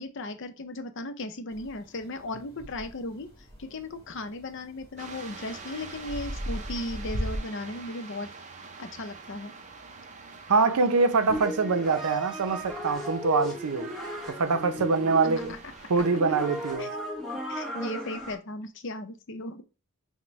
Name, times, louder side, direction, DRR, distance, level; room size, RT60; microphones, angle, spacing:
voice 1, 0.0-3.3 3.6-8.3 8.8-9.5 16.8-16.9 17.5-19.6, left 2 dB, 55° left, 0.6 m, -36 dB
sound 1, 1.5-7.4, equal, 25° left, 1.5 m, -39 dB
sound 2, 5.0-16.8, right 4 dB, 30° right, 0.5 m, -46 dB
voice 2, 10.5-13.9 14.3-15.5 15.9-16.9, right 4 dB, 85° right, 0.5 m, -24 dB
sound 3, 11.3-18.3, equal, ahead, 0.8 m, -35 dB
5.9 x 2.1 x 3.1 m
head